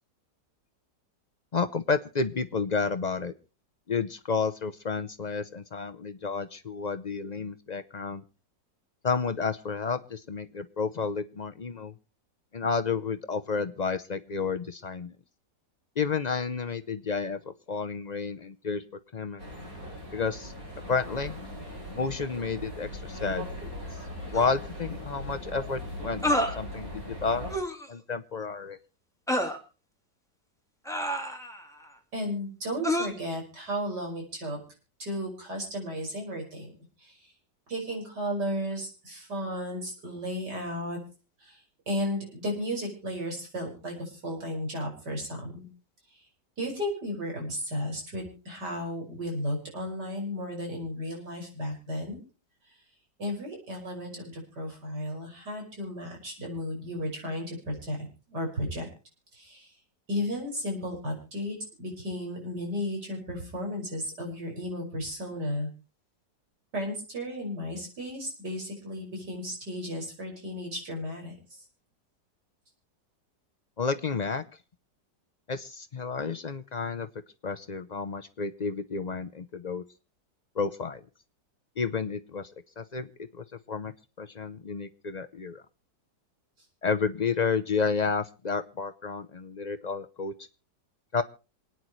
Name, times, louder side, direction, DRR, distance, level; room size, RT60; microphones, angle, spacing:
voice 1, 1.5-3.3 3.9-8.2 9.0-11.9 12.5-15.1 16.0-18.8 19.1-19.4 20.1-20.5 20.9-21.4 21.9-23.7 24.3-27.5 27.9-28.8 73.8-74.4 75.5-77.1 77.4-79.8 80.6-81.0 81.8-82.5 82.8-83.1 83.3-83.9 84.2-85.6 86.8-90.5 91.1-91.2, left 5 dB, 65° left, 10 dB, 0.4 m, -31 dB
sound 1, 19.4-27.6, left 1 dB, 50° right, 8.5 m, -39 dB
sound 2, 24.3-24.5 26.2-26.6 27.5-27.9 29.3-29.6 30.9-31.7 32.8-33.1, equal, ahead, 2.1 m, -28 dB
voice 2, 32.1-34.6 35.0-36.7 37.0-37.2 37.7-41.0 41.4-41.6 41.9-45.7 46.6-52.2 53.2-58.9 59.3-59.7 60.1-65.7 66.7-71.3, equal, 70° right, 1 dB, 6.5 m, -34 dB
27.5 x 9.6 x 3.1 m, 0.34 s
omnidirectional pair, 1.9 m